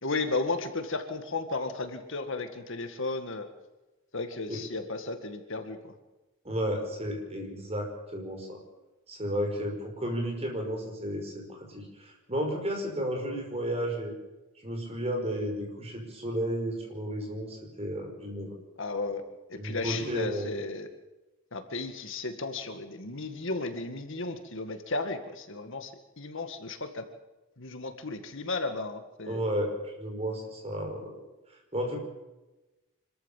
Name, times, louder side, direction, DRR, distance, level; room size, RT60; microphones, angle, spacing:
voice 1, 0.0-3.5 4.1-5.9 18.8-19.2 19.5-20.9 21.5-27.1 27.6-29.4, left 3 dB, 60° left, 7 dB, 1.9 m, -34 dB
voice 2, 6.4-8.6 9.1-14.1 14.6-18.5 19.5-20.5 29.3-31.2 31.7-32.0, equal, 30° right, 2 dB, 5.5 m, -33 dB
26.0 x 14.0 x 7.4 m, 1.1 s
head